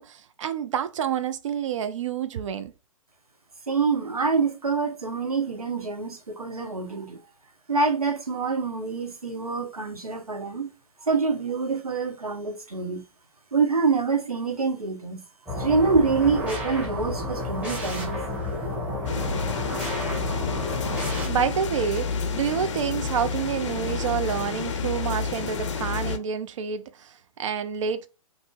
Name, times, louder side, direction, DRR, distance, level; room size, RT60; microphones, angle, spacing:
voice 1, 0.0-2.7 21.3-28.1, right 8 dB, 60° right, 0.4 m, -28 dB
voice 2, 3.7-7.2 7.7-10.7 11.0-13.0 13.5-15.2 15.6-18.2, right 4 dB, 80° right, 0.8 m, -26 dB
sound 1, 15.5-21.3, left 1 dB, 10° right, 0.8 m, -31 dB
sound 2, 19.1-26.2, left 5 dB, 55° left, 0.5 m, -29 dB
2.5 x 2.0 x 3.5 m
figure-of-eight pair, 115°, 19 cm